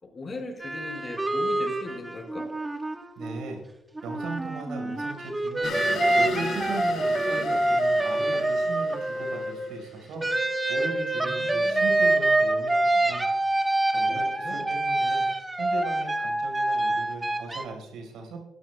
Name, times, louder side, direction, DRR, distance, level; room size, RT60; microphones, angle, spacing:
voice 1, 0.0-2.5 11.2-12.0 14.1-14.7, left 2 dB, 35° left, 2 dB, 4.4 m, -39 dB
sound 1, 0.6-3.6 3.9-9.8 10.2-17.6, right 2 dB, 15° right, 1.1 m, -26 dB
voice 2, 3.2-3.6 4.0-5.8 6.1-10.3 10.7-13.2 13.9-15.2 15.6-18.4, right 3 dB, 85° right, 3 dB, 4.4 m, -38 dB
sound 2, 5.6-10.2, left 3 dB, 70° left, 4.7 m, -35 dB
20.0 x 12.5 x 2.2 m, 0.97 s
cardioid pair, 90°, 0 cm